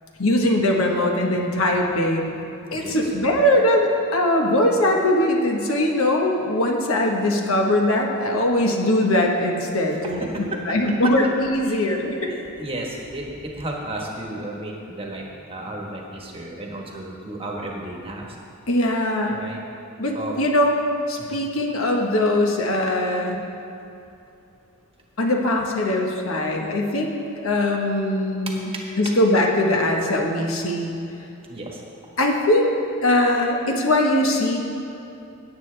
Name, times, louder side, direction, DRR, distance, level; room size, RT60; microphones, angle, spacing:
voice 1, 0.2-2.3 2.7-10.3 10.7-12.3 18.7-19.4 20.0-20.8 21.1-23.4 25.2-27.1 27.4-28.7 29.0-30.9 32.2-32.7 33.0-34.6, left 1 dB, 65° left, 1 dB, 1.3 m, -21 dB
voice 2, 2.7-3.1 9.9-11.1 11.7-18.4 19.2-19.6 20.1-20.4 21.2-21.4 28.5-29.1 31.5-31.8, right 1 dB, 25° right, -1 dB, 1.3 m, -34 dB
16.5 x 8.5 x 3.3 m, 2.7 s
head